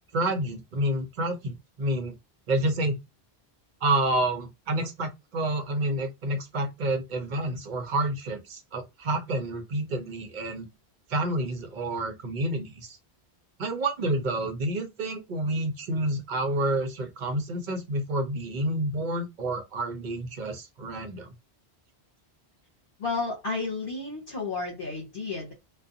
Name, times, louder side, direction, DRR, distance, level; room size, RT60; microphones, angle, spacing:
voice 1, 0.1-2.2 2.5-3.0 3.8-10.7 11.1-13.0 13.6-21.3, right 1 dB, 55° right, 0.7 m, -29 dB
voice 2, 23.0-25.5, left 3 dB, 60° left, 1.0 m, -32 dB
2.4 x 2.2 x 2.6 m
omnidirectional pair, 1.1 m